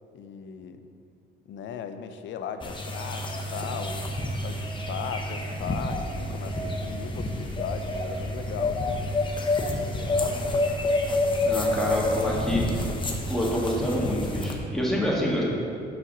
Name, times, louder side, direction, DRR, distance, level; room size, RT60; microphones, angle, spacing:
voice 1, 0.1-0.9 1.5-4.1 4.4-9.1 9.6-10.6 11.4-11.5, left 6 dB, 70° left, 9 dB, 0.5 m, -38 dB
sound 1, 2.6-14.5, left 2 dB, 25° left, 0.8 m, -28 dB
voice 2, 11.4-12.8 13.3-15.4, equal, ahead, -5 dB, 1.6 m, -27 dB
5.6 x 4.1 x 6.0 m, 2.5 s
cardioid pair, 90°, 20 cm